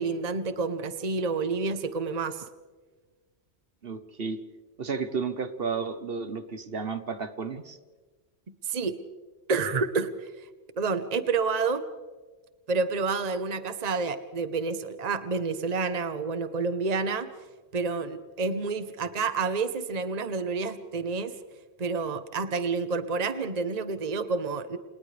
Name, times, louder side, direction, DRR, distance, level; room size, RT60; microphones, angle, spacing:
voice 1, 0.0-2.5 8.6-8.9 9.5-10.5 10.8-11.8 12.7-17.3 17.7-21.3 21.8-24.8, right 4 dB, 40° right, 10 dB, 1.1 m, -29 dB
voice 2, 3.8-4.4 4.8-7.8, right 5 dB, 60° right, 10 dB, 1.3 m, -32 dB
29.0 x 28.5 x 3.4 m, 1.3 s
omnidirectional pair, 1.1 m